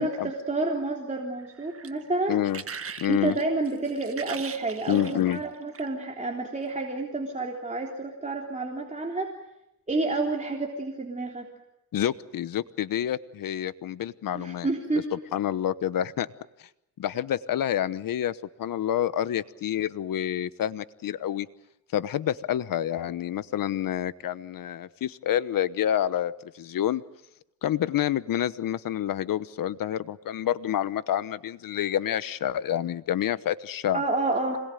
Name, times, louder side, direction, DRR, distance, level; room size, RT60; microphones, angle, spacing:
voice 1, 0.0-2.4 3.1-9.3 9.9-11.5 14.3-15.1 33.9-34.6, right 2 dB, 20° right, 0 dB, 3.6 m, -29 dB
sound 1, 1.4-6.0 6.8-7.0, right 6 dB, 45° right, 1.7 m, -41 dB
voice 2, 2.3-2.6 3.0-3.3 4.9-5.4 11.9-14.7 15.1-16.3 16.6-16.7 17.0-21.5 21.9-27.0 27.6-34.0, left 11 dB, 80° left, 15 dB, 1.1 m, -28 dB
26.5 x 21.0 x 9.1 m, 0.87 s
cardioid pair, 100°, 33 cm